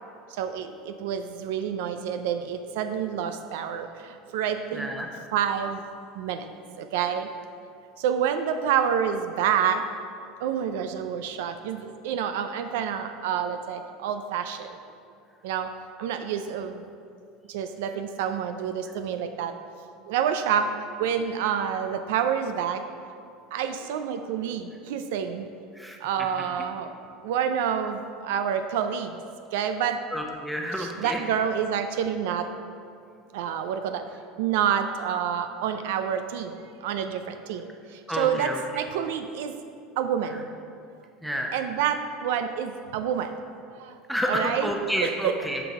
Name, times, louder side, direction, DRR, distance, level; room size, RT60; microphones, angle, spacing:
voice 1, 0.3-4.9 5.3-5.8 6.2-6.5 6.8-7.3 8.0-9.8 10.4-14.8 15.4-15.7 16.0-16.8 17.5-19.5 20.1-22.8 23.5-25.5 26.0-26.9 27.2-29.2 29.5-30.0 30.8-32.5 33.3-34.0 34.4-39.5 40.0-40.5 41.5-43.5 43.8-43.9 44.3-44.7 45.0-45.3, right 8 dB, 80° right, 8 dB, 0.4 m, -28 dB
voice 2, 4.7-5.1 25.8-26.0 30.1-31.2 38.1-38.6 41.2-41.5 44.1-45.6, equal, ahead, 1 dB, 0.8 m, -29 dB
11.0 x 4.0 x 4.8 m, 2.3 s
supercardioid pair, 120°, 0 cm